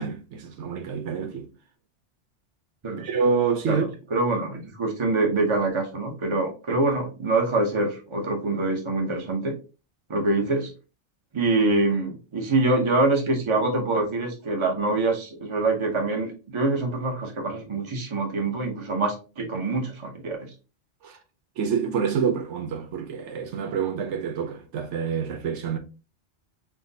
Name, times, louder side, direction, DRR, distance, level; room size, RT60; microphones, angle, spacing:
voice 1, 0.0-1.5 3.0-3.9 21.0-21.2 21.6-25.8, right 6 dB, 80° right, 1.0 m, -27 dB
voice 2, 4.1-9.6 10.1-10.7 11.3-20.5, right 2 dB, 30° right, 0.9 m, -25 dB
5.8 x 2.2 x 2.7 m
omnidirectional pair, 1.2 m